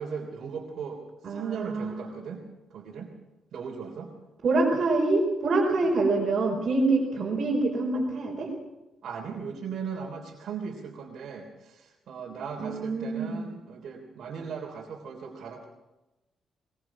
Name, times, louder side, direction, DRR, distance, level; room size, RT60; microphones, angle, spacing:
voice 1, 0.0-2.4 2.7-3.1 3.5-4.1 9.0-15.6, right 6 dB, 60° right, 0 dB, 3.4 m, -38 dB
voice 2, 1.2-2.1 4.4-8.5 12.6-13.4, right 3 dB, 40° right, -4 dB, 4.7 m, -26 dB
21.5 x 21.0 x 6.1 m, 1.0 s
cardioid pair, 150°, 0 cm